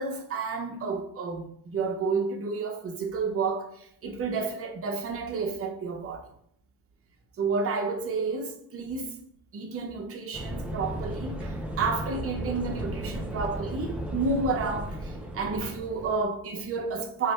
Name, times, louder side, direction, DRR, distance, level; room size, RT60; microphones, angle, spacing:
voice 1, 0.0-6.3 7.4-9.1 9.5-17.3, right 4 dB, 35° right, 0.6 m, -31 dB
sound 1, 10.3-16.3, right 1 dB, 5° right, 0.3 m, -35 dB
3.2 x 2.1 x 4.1 m
cardioid pair, 110°, 38 cm